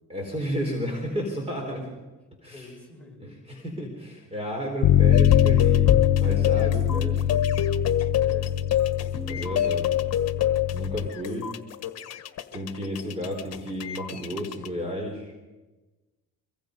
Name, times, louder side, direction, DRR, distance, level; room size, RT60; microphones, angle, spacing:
voice 1, 0.1-1.8 2.4-2.7 3.2-5.9 6.2-7.2 9.3-10.1 10.7-11.5 12.5-15.4, equal, 20° right, 2 dB, 4.3 m, -32 dB
voice 2, 1.4-1.8 2.5-3.3 8.1-8.6 8.9-9.5, left 2 dB, 5° left, -2 dB, 5.9 m, -44 dB
Bass guitar, 4.8-11.1, left 10 dB, 75° left, 0.7 m, -23 dB
sound 1, 5.1-14.7, left 11 dB, 50° left, 1.5 m, -26 dB
24.5 x 23.5 x 5.4 m, 1.2 s
cardioid pair, 120°, 33 cm